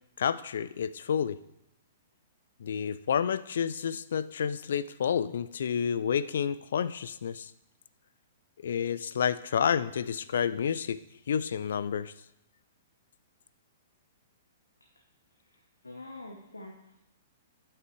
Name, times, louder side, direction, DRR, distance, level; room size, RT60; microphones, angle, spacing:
voice 1, 0.2-1.4 2.6-7.5 8.6-11.0 11.3-12.1, left 7 dB, 65° left, 15 dB, 0.4 m, -30 dB
voice 2, 15.4-17.0, left 2 dB, 90° left, 0 dB, 1.0 m, -46 dB
11.5 x 5.9 x 3.2 m, 0.83 s
figure-of-eight pair, 115°, 0 cm